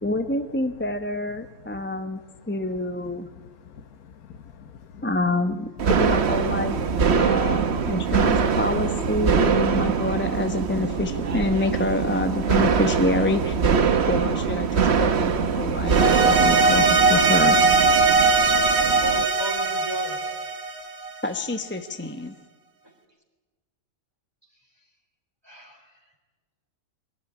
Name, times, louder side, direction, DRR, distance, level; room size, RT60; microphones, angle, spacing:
voice 1, 0.0-2.2 2.5-3.3 5.0-6.8 7.1-13.7 14.1-17.6 17.9-18.5 21.2-22.4, left 1 dB, 10° left, 7 dB, 0.8 m, -27 dB
voice 2, 3.6-5.0 7.1-8.4, left 7 dB, 70° left, 8 dB, 1.4 m, -42 dB
sound 1, 5.8-19.3, right 6 dB, 45° right, 1.2 m, -23 dB
sound 2, 15.9-21.2, right 4 dB, 65° right, 2.4 m, -20 dB
voice 3, 18.9-20.2 22.8-22.9 25.4-26.1, left 1 dB, 15° right, 0 dB, 4.1 m, -36 dB
23.0 x 17.5 x 9.9 m, 1.3 s
omnidirectional pair, 1.6 m